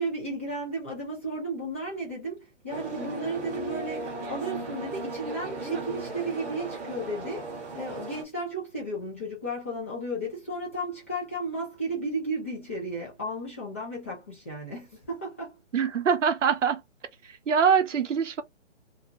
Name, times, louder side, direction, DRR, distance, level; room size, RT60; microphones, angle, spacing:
voice 1, 0.0-7.5 7.7-15.5, right 1 dB, 10° left, 0.4 m, -34 dB
sound 1, 2.7-8.2, right 2 dB, 15° right, 0.7 m, -36 dB
voice 2, 15.7-16.8 17.5-18.4, right 7 dB, 75° right, 0.6 m, -23 dB
2.6 x 2.1 x 2.7 m
figure-of-eight pair, 140°, 37 cm